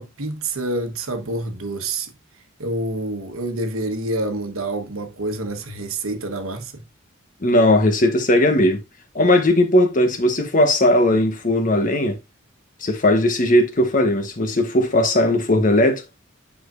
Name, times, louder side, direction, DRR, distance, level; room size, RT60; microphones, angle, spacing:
voice 1, 0.0-2.1 2.6-6.8, right 2 dB, 90° right, 1.2 m, -27 dB
voice 2, 7.4-8.8 9.1-12.1 12.8-16.0, left 1 dB, 40° left, 1.1 m, -17 dB
8.9 x 4.9 x 2.5 m
head